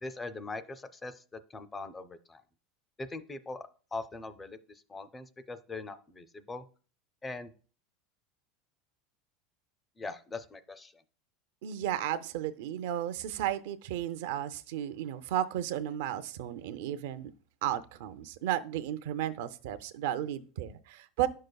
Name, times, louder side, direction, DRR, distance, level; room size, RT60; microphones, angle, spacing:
voice 1, 0.0-2.4 3.0-6.6 7.2-7.5 10.0-11.0, left 3 dB, 10° left, 11 dB, 0.4 m, -41 dB
voice 2, 11.6-17.3 17.6-21.3, right 11 dB, 70° right, 12 dB, 0.5 m, -34 dB
10.5 x 6.5 x 2.3 m, 0.39 s
supercardioid pair, 165°, 0 cm